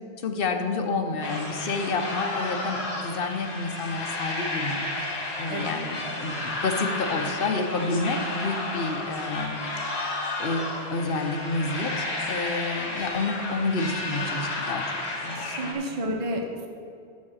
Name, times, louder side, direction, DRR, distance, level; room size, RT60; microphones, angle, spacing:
voice 1, 0.2-4.9 5.4-9.6 10.4-10.6 10.9-15.0 15.2-15.8, left 3 dB, 60° left, 5 dB, 1.0 m, -29 dB
sound 1, 1.2-15.7, left 2 dB, 85° left, 1.7 m, -32 dB
voice 2, 15.3-16.7, right 1 dB, 35° right, 1 dB, 0.8 m, -31 dB
7.3 x 6.9 x 6.3 m, 2.5 s
omnidirectional pair, 1.1 m